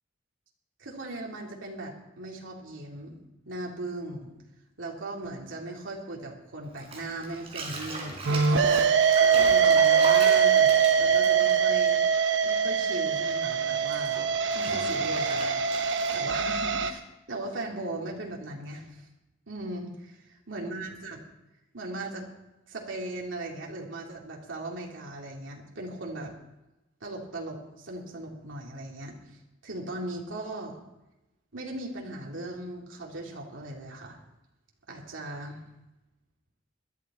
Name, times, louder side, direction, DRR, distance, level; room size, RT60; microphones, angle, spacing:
voice 1, 0.8-3.2 3.5-4.3 4.8-8.9 9.4-12.0 12.4-15.5 16.1-17.0 17.3-19.1 19.5-21.2 21.7-22.3 22.7-26.4 27.0-29.2 29.6-30.8 31.5-34.2 34.9-35.6, right 2 dB, 90° right, -1 dB, 2.6 m, -38 dB
Bathtub (filling or washing), 6.8-12.6 12.9-16.4, right 2 dB, 30° right, 4.0 m, -38 dB
sound 1, 8.3-16.9, right 6 dB, 70° right, 1.0 m, -23 dB
21.0 x 12.0 x 4.2 m, 0.97 s
head